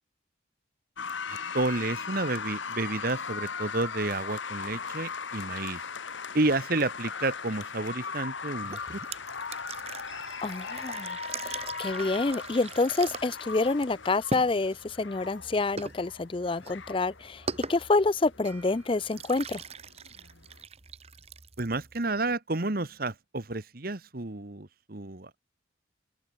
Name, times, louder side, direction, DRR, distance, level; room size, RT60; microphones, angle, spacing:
sound 1, 1.0-20.6, left 5 dB, 80° left, 1.6 m, -39 dB
voice 1, 1.3-5.8 6.3-9.0 21.6-25.3, right 2 dB, 50° right, 1.4 m, -30 dB
sound 2, 8.6-22.4, right 4 dB, 35° right, 1.2 m, -42 dB
voice 2, 10.4-11.2 11.8-17.4 17.7-19.6, left 3 dB, 25° left, 0.5 m, -27 dB
open air
head